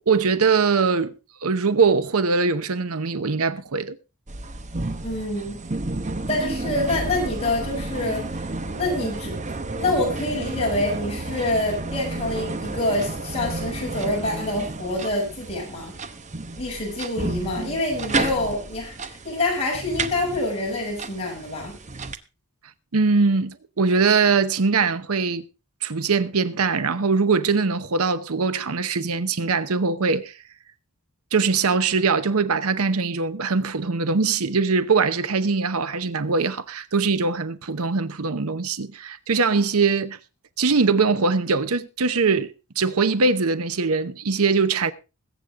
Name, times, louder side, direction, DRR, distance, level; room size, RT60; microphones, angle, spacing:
voice 1, 0.1-1.2 1.4-4.0 22.9-25.4 25.8-30.3 31.3-40.2 40.6-44.9, right 4 dB, 85° right, 0.8 m, -22 dB
sound 1, 4.3-22.1, right 2 dB, 35° right, 0.8 m, -31 dB
voice 2, 5.0-5.6 6.3-9.4 9.7-15.9 16.6-21.8, left 2 dB, 30° left, 6.7 m, -26 dB
21.5 x 8.2 x 3.6 m
head